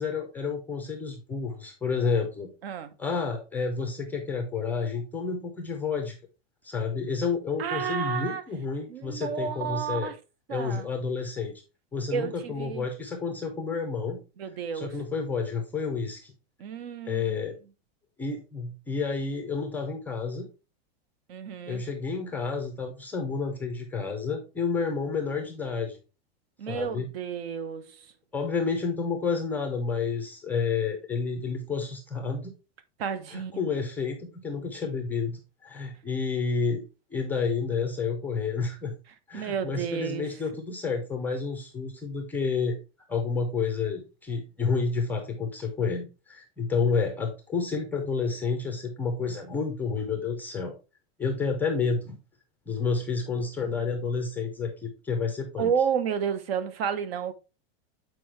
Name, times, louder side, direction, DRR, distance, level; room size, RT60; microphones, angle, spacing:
voice 1, 0.0-2.5 3.0-6.1 6.6-10.1 10.5-11.6 11.9-14.2 14.7-16.3 17.1-17.6 18.2-20.5 21.7-26.0 26.7-27.1 28.3-32.5 33.3-36.8 37.1-38.9 39.3-42.8 43.1-50.7 51.2-52.2 52.7-55.7, left 5 dB, 5° left, 0.4 m, -30 dB
voice 2, 7.6-8.4 8.9-10.2 10.5-10.9 12.1-12.9 14.4-14.9 16.6-17.4 21.3-21.8 26.6-28.1 33.0-33.6 39.3-40.3 55.6-57.3, right 7 dB, 70° right, 1.0 m, -31 dB
7.6 x 4.5 x 3.2 m
supercardioid pair, 175°, 31 cm